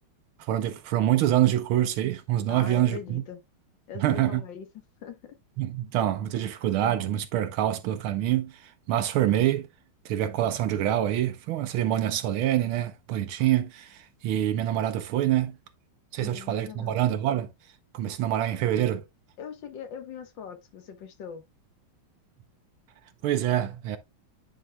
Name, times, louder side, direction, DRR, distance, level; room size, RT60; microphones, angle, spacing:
voice 1, 0.5-3.2 4.0-4.4 5.6-9.7 10.0-15.6 16.1-17.5 17.9-19.0 23.2-24.0, right 12 dB, 80° right, 1.6 m, -26 dB
voice 2, 2.5-3.4 3.9-4.7 5.0-5.4 16.2-17.0 19.4-21.4, left 7 dB, 65° left, 1.6 m, -41 dB
10.0 x 5.2 x 2.2 m
omnidirectional pair, 2.3 m